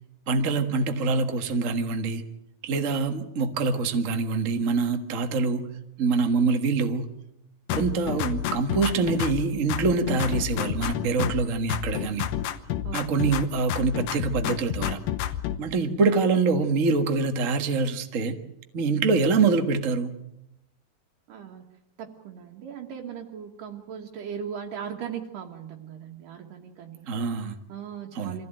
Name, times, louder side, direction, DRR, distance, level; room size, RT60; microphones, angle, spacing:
voice 1, 0.3-2.2 2.6-5.7 6.0-7.1 7.7-12.3 12.9-15.0 15.6-18.4 18.7-20.1 27.1-27.5 28.1-28.4, right 4 dB, 50° right, 7 dB, 0.9 m, -25 dB
sound 1, 7.7-9.4 9.7-11.4 11.7-13.4 13.7-15.6, left 11 dB, 90° left, 2.8 m, -29 dB
voice 2, 12.8-13.2 21.3-21.6 22.0-27.3 27.7-28.5, right 8 dB, 75° right, 0 dB, 3.0 m, -38 dB
25.0 x 15.5 x 9.0 m, 0.85 s
omnidirectional pair, 4.0 m